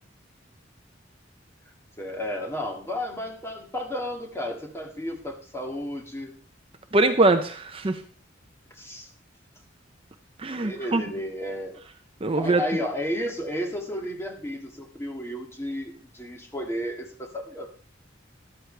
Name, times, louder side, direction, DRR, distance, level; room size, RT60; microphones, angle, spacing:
voice 1, 2.0-6.3 8.7-9.1 10.6-11.8 12.3-17.7, equal, 15° left, 2 dB, 2.0 m, -32 dB
voice 2, 6.9-8.0 10.4-11.0 12.2-12.6, right 2 dB, 30° right, 8 dB, 0.7 m, -22 dB
13.0 x 11.5 x 3.3 m, 0.40 s
head